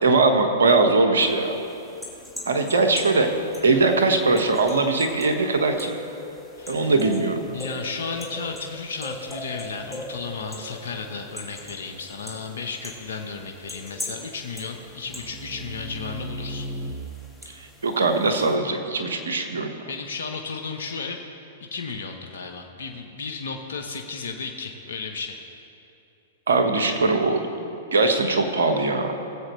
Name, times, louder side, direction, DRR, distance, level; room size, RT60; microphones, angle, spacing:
voice 1, 0.0-1.6 2.5-3.3 3.6-6.0 6.7-7.4 17.6-19.7 26.5-27.5 27.9-29.1, right 3 dB, 80° right, 5 dB, 1.3 m, -21 dB
sound 1, 1.2-18.6, left 1 dB, ahead, 1.8 m, -41 dB
voice 2, 6.6-6.9 7.5-16.7 19.9-21.2 21.6-25.4, left 4 dB, 75° left, 3 dB, 1.0 m, -34 dB
sound 2, 9.8-12.5 14.9-16.9, equal, 35° right, 1.2 m, -38 dB
19.0 x 7.7 x 3.2 m, 2.7 s
hypercardioid pair, 115°, 0 cm